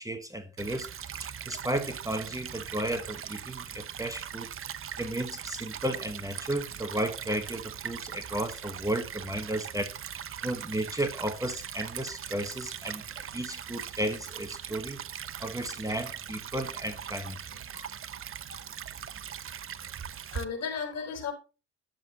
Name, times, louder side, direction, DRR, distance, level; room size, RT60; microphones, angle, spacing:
voice 1, 0.0-4.5 5.0-15.0 15.4-17.4, right 1 dB, 10° right, 1.2 m, -34 dB
Stream / Trickle dribble, 0.6-20.4, right 9 dB, 45° right, 0.8 m, -40 dB
voice 2, 20.3-21.3, left 6 dB, 55° left, 3.9 m, -36 dB
10.5 x 7.2 x 2.8 m
cardioid pair, 90°, 30 cm